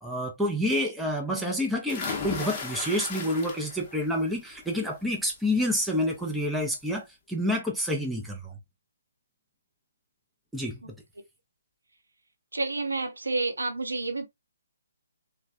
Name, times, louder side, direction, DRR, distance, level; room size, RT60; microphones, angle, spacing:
voice 1, 0.0-8.6 10.5-10.9, left 1 dB, ahead, 0.5 m, -28 dB
sound 1, 1.9-4.0 4.4-4.8 6.2-6.3 6.7-6.8, left 4 dB, 25° left, 0.8 m, -35 dB
voice 2, 12.5-14.3, right 3 dB, 75° right, 0.7 m, -30 dB
3.1 x 2.1 x 2.4 m
figure-of-eight pair, 135°, 0 cm